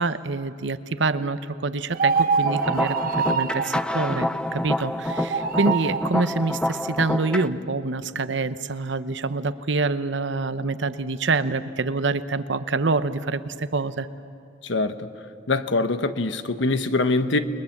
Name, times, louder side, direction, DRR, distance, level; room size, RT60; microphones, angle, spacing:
voice 1, 0.0-14.1, right 3 dB, 80° right, 12 dB, 0.9 m, -26 dB
sound 1, 1.9-3.8 5.1-6.1, right 5 dB, 50° right, 1.1 m, -24 dB
sound 2, 2.5-7.5, left 1 dB, 5° left, 0.6 m, -27 dB
voice 2, 14.6-15.0 15.5-17.4, left 3 dB, 85° left, 10 dB, 1.1 m, -23 dB
30.0 x 21.5 x 7.3 m, 2.4 s
head